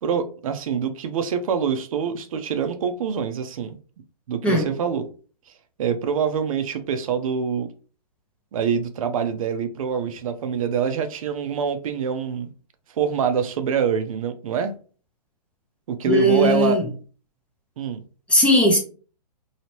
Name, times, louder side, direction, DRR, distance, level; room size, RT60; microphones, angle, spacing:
voice 1, 0.0-3.8 4.3-5.0 5.8-7.7 8.5-12.5 13.0-14.7 15.9-16.8 17.8-18.0, right 7 dB, 55° right, 0.5 m, -25 dB
voice 2, 16.0-16.9 18.3-18.8, equal, 5° left, 0.5 m, -18 dB
2.9 x 2.8 x 3.0 m
hypercardioid pair, 140°, 21 cm